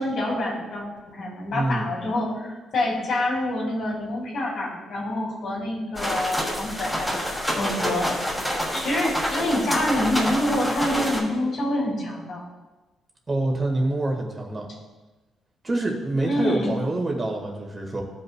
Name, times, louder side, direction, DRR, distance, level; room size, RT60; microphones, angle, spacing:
voice 1, 0.0-8.2 8.5-12.4 16.2-16.7, left 1 dB, 60° left, -2 dB, 2.4 m, -27 dB
voice 2, 1.5-1.9 13.3-14.7 15.6-18.0, right 2 dB, 30° right, 1 dB, 1.6 m, -26 dB
sound 1, 6.0-11.2, equal, 5° left, 2.4 m, -27 dB
15.5 x 5.5 x 2.2 m, 1.2 s
cardioid pair, 90°, 0 cm